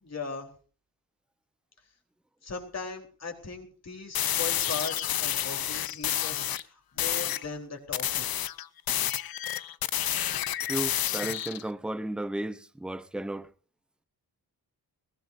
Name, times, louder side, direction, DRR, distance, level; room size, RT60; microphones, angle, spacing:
voice 1, 0.0-0.5 2.4-8.3, left 4 dB, 40° left, 3.8 m, -39 dB
sound 1, 4.1-6.6 7.0-7.4 7.9-11.6, left 11 dB, 65° left, 0.8 m, -30 dB
voice 2, 10.7-13.5, right 1 dB, ahead, 0.6 m, -34 dB
21.0 x 16.5 x 2.7 m
wide cardioid pair, 130°, 38 cm